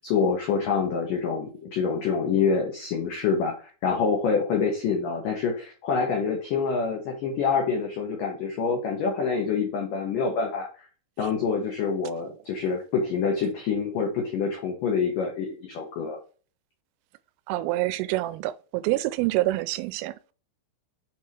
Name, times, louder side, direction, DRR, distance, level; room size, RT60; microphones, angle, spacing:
voice 1, 0.0-3.5 3.8-10.9 11.2-16.2, left 5 dB, 85° left, 1.8 m, -26 dB
voice 2, 17.5-20.3, right 17 dB, 90° right, 3.1 m, -27 dB
8.0 x 2.9 x 4.7 m
omnidirectional pair, 5.6 m